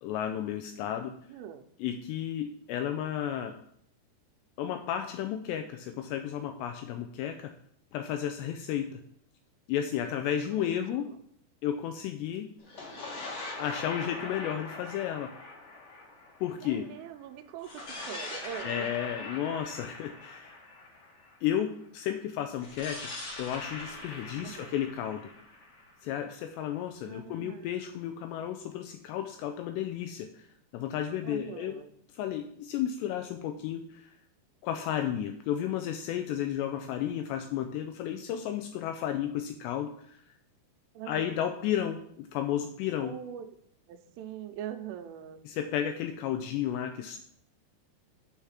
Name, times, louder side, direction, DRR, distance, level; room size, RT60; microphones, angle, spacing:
voice 1, 0.0-1.1 1.8-3.6 4.6-7.5 7.9-9.0 9.7-11.1 11.6-12.5 13.6-15.3 16.4-16.9 18.6-20.6 21.4-23.1 23.4-25.3 26.0-30.5 30.7-31.8 32.2-34.1 34.6-40.2 41.1-43.1 45.5-47.2, left 10 dB, 90° left, 6 dB, 2.5 m, -33 dB
voice 2, 1.3-1.7 10.5-11.2 16.6-17.7 18.1-18.9 24.4-24.7 27.0-28.1 31.2-31.9 40.9-41.4 43.0-43.5 43.9-45.4, right 9 dB, 85° right, 6 dB, 3.2 m, -43 dB
sound 1, 12.6-17.0 17.6-21.5 22.6-26.4, left 2 dB, 50° left, 1.9 m, -42 dB
8.9 x 4.9 x 5.7 m, 0.67 s
omnidirectional pair, 5.5 m